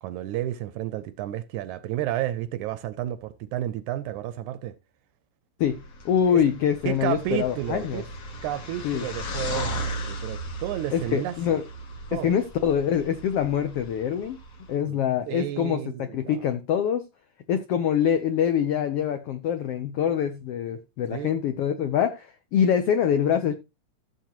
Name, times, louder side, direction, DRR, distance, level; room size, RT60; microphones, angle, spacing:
voice 1, 0.0-4.8 6.3-6.4 6.8-8.0 8.4-11.6 12.1-12.4 14.9-15.0 15.3-16.4 21.1-21.4, right 13 dB, 80° right, 1.8 m, -31 dB
sound 1, 5.6-14.8, equal, 55° left, 2.5 m, -37 dB
voice 2, 6.0-8.0 8.8-9.0 10.9-11.6 12.1-14.4 14.7-17.0 17.5-23.5, left 8 dB, 90° left, 1.3 m, -25 dB
14.5 x 7.3 x 3.0 m
omnidirectional pair, 3.8 m